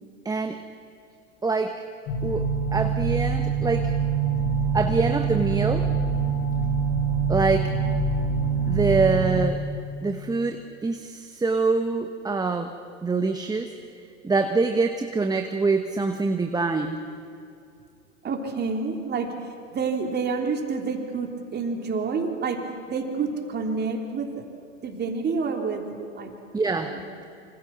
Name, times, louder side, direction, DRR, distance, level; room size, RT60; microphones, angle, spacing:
voice 1, 0.2-0.6 1.4-1.7 2.2-3.9 4.7-5.9 7.3-7.7 8.7-9.6 10.0-12.7 13.0-13.7 14.2-17.0 26.5-27.0, right 3 dB, 10° right, 6 dB, 1.2 m, -25 dB
sound 1, 2.1-9.4, right 5 dB, 40° left, 4.7 m, -25 dB
voice 2, 18.2-19.3 19.7-24.4 24.8-25.9 26.1-26.3 26.8-27.0, right 4 dB, 25° right, 3 dB, 3.5 m, -28 dB
26.5 x 25.5 x 6.1 m, 2.5 s
hypercardioid pair, 100°, 39 cm